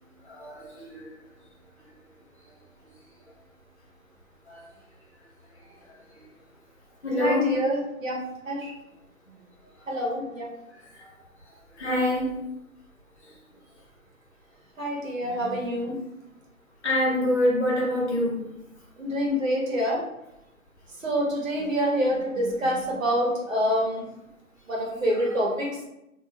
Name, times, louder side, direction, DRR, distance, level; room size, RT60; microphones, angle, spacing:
voice 1, 0.2-1.1 4.5-4.7 6.1-6.2 7.0-7.6 10.7-11.1 11.7-12.4 13.3-13.4 15.4-15.7 16.8-18.4 22.4-22.6, left 1 dB, 50° left, -5 dB, 1.3 m, -26 dB
voice 2, 7.2-8.7 9.9-10.5 14.8-16.0 19.0-20.1 21.0-24.1 24.7-25.8, equal, 65° right, -3 dB, 1.1 m, -26 dB
3.1 x 2.7 x 2.3 m, 0.86 s
hypercardioid pair, 170°, 43 cm